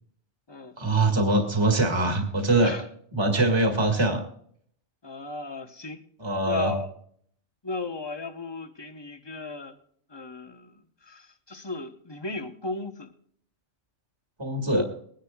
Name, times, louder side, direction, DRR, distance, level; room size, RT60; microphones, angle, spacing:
voice 1, 0.8-2.7 3.1-4.2 6.2-6.8 14.4-14.8, right 2 dB, 20° right, 3 dB, 1.9 m, -23 dB
voice 2, 5.0-6.0 6.4-6.9 7.6-9.8 10.1-13.1 14.8-14.9, left 3 dB, 25° left, 8 dB, 1.0 m, -35 dB
21.5 x 10.5 x 2.4 m, 0.63 s
omnidirectional pair, 1.2 m